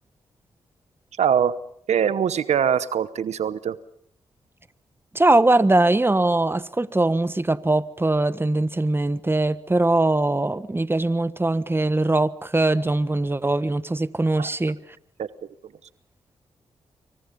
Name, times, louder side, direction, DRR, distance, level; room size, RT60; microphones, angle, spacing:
voice 1, 1.2-1.6 1.9-3.8 14.4-14.5 15.2-15.3, right 8 dB, 70° right, 15 dB, 0.9 m, -22 dB
voice 2, 5.1-14.8, right 2 dB, 20° right, 14 dB, 1.3 m, -21 dB
26.5 x 24.0 x 5.4 m, 0.68 s
supercardioid pair, 45°, 12 cm